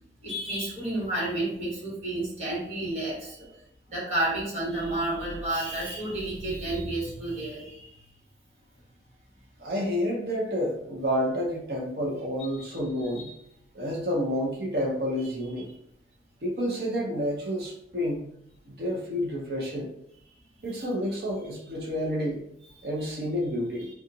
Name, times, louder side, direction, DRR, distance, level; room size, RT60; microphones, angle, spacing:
voice 1, 0.2-3.6 3.9-7.9 12.4-13.1 20.7-20.8 22.8-23.1, right 1 dB, 40° right, -5 dB, 1.3 m, -31 dB
voice 2, 9.6-13.3 13.7-15.7 16.4-18.2 18.7-19.9 20.6-22.4 22.8-23.9, equal, 65° right, -2 dB, 0.7 m, -29 dB
2.8 x 2.4 x 3.9 m, 0.73 s
head